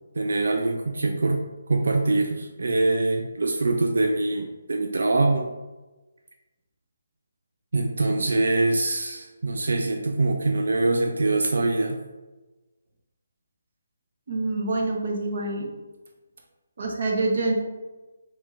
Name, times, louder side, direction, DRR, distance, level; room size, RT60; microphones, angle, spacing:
voice 1, 0.2-1.4 1.7-5.5 7.7-12.0, right 2 dB, 75° right, 3 dB, 0.4 m, -24 dB
voice 2, 14.3-15.7 16.8-17.5, right 2 dB, 55° right, 1 dB, 0.7 m, -26 dB
4.4 x 3.0 x 2.4 m, 1.2 s
hypercardioid pair, 160°, 0 cm